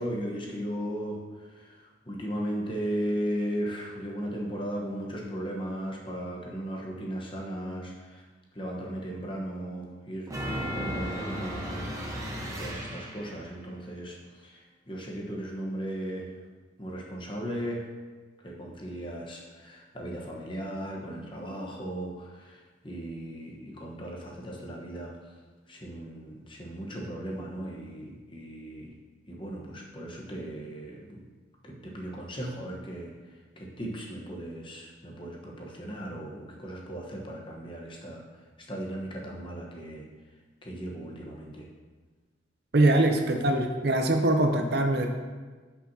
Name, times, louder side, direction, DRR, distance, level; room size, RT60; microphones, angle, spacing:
voice 1, 0.0-8.2 8.5-10.3 10.7-16.3 16.8-17.8 18.4-25.1 25.7-28.9 29.3-31.2 31.6-33.1 33.6-38.2 38.6-40.0 40.6-41.7, equal, 25° left, -2 dB, 1.1 m, -36 dB
sound 1, 10.3-13.5, equal, 15° right, 1.0 m, -35 dB
voice 2, 42.7-45.1, right 1 dB, 55° right, 4 dB, 0.7 m, -23 dB
10.5 x 5.9 x 2.8 m, 1.4 s
head